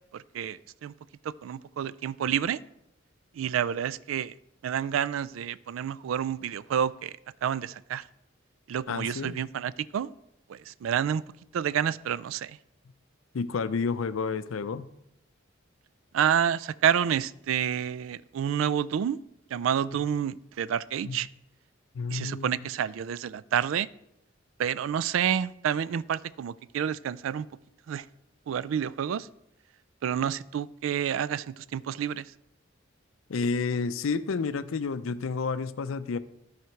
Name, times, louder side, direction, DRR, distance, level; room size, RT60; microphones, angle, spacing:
voice 1, 0.1-0.9 1.2-2.6 3.4-4.3 4.6-7.1 7.4-8.0 8.7-10.1 10.5-11.2 11.5-12.6 16.1-19.2 19.5-21.3 22.1-23.9 24.6-27.5 27.9-28.0 28.5-29.3 30.0-32.2, right 9 dB, 80° right, 19 dB, 0.3 m, -29 dB
voice 2, 8.9-9.4 13.3-14.9 19.9-20.0 21.0-21.3 21.9-22.5 33.3-36.2, left 4 dB, 90° left, 14 dB, 0.5 m, -30 dB
12.5 x 5.0 x 4.5 m, 0.82 s
head